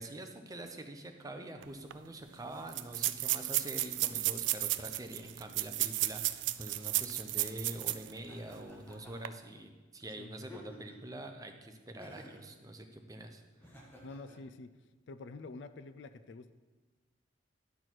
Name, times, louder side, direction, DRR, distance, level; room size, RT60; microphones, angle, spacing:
voice 1, 0.0-13.4, right 1 dB, 20° right, 4 dB, 0.7 m, -45 dB
sound 1, 1.6-1.7 1.9-2.0 2.7-8.1 8.5-8.6 9.1-9.3, right 16 dB, 70° right, 0.3 m, -33 dB
Laughter, 8.3-9.3 10.4-11.1 12.0-12.5 13.6-14.4, left 1 dB, 10° left, 1.4 m, -53 dB
voice 2, 14.0-14.7 15.1-16.5, left 3 dB, 70° left, 11 dB, 0.4 m, -47 dB
10.5 x 6.3 x 4.5 m, 1.3 s
head